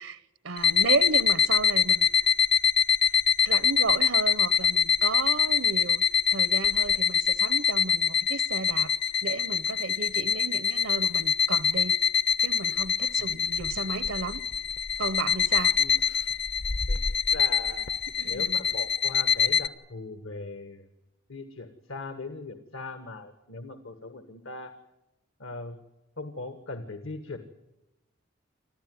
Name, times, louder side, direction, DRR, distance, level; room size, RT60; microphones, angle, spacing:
voice 1, 0.0-2.3 3.4-6.1 6.3-9.0 9.2-12.0 12.4-14.4 15.0-15.8 18.2-18.5, right 4 dB, 90° right, 0.9 m, -33 dB
sound 1, 0.6-19.7, left 7 dB, 55° left, 0.7 m, -24 dB
voice 2, 16.9-17.9 18.2-20.9 21.3-24.7 25.4-25.8 26.2-27.4, left 3 dB, 80° left, 1.7 m, -40 dB
27.0 x 14.5 x 9.5 m
head